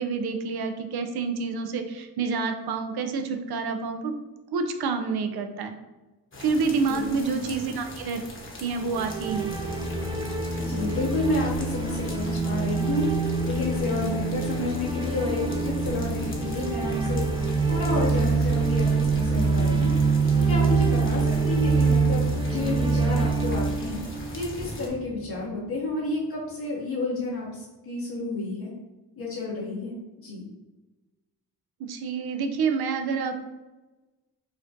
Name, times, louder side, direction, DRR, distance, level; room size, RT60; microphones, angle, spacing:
voice 1, 0.0-4.1 4.5-5.7 6.4-8.2 8.6-9.5 31.8-33.5, right 4 dB, 65° right, 7 dB, 0.6 m, -28 dB
sound 1, 6.3-24.9, left 1 dB, 30° left, 1.0 m, -41 dB
voice 2, 6.9-7.2 10.6-13.0 13.5-17.2 17.7-19.9 20.4-24.0 24.3-28.7 29.2-30.4, left 2 dB, 65° left, -6 dB, 1.1 m, -30 dB
sound 2, 8.9-25.0, right 4 dB, 15° right, 0.3 m, -25 dB
4.8 x 2.2 x 2.6 m, 1.1 s
supercardioid pair, 50°, 40 cm